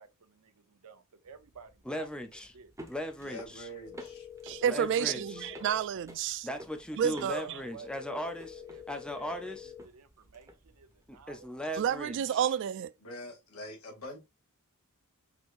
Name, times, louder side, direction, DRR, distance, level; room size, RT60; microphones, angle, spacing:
voice 1, 0.0-2.1 2.5-2.7 7.4-11.5, right 6 dB, 85° right, 0.7 m, -52 dB
sound 1, 1.3-12.2, equal, 15° right, 0.9 m, -53 dB
voice 2, 1.9-2.5 2.9-3.7 4.6-5.5 6.4-8.6 8.9-9.7 11.3-12.5, left 1 dB, 5° left, 0.5 m, -38 dB
voice 3, 3.2-4.3 13.0-14.2, equal, 70° left, 2.1 m, -44 dB
sound 2, 3.8-5.8 7.8-9.8, left 10 dB, 40° left, 1.0 m, -47 dB
voice 4, 4.4-6.5 7.0-7.4 11.8-12.9, right 9 dB, 55° right, 0.3 m, -30 dB
6.1 x 2.9 x 2.5 m
head